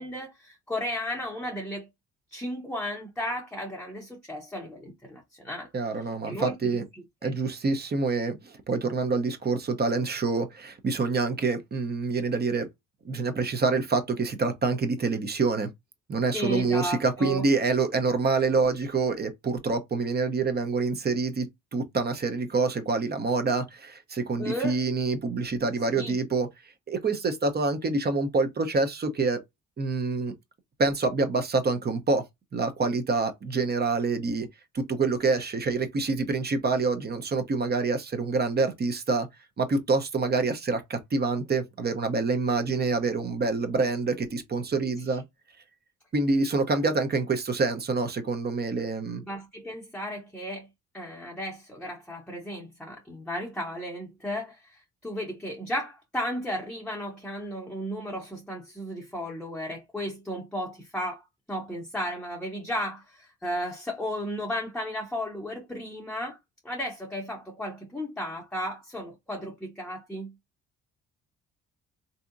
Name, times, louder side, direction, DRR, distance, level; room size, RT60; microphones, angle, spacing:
voice 1, 0.0-1.9 2.3-5.7 6.2-7.3 16.3-17.4 24.4-24.8 25.9-26.2 49.3-50.7 50.9-66.4 66.6-70.3, equal, 5° left, 0.8 m, -34 dB
voice 2, 5.7-6.8 7.2-12.7 13.0-15.7 16.1-26.5 26.9-29.4 29.8-30.3 30.8-32.2 32.5-34.5 34.7-39.3 39.6-45.2 46.1-49.2, right 3 dB, 35° right, 0.7 m, -26 dB
3.5 x 2.8 x 2.5 m
cardioid pair, 90°, 30 cm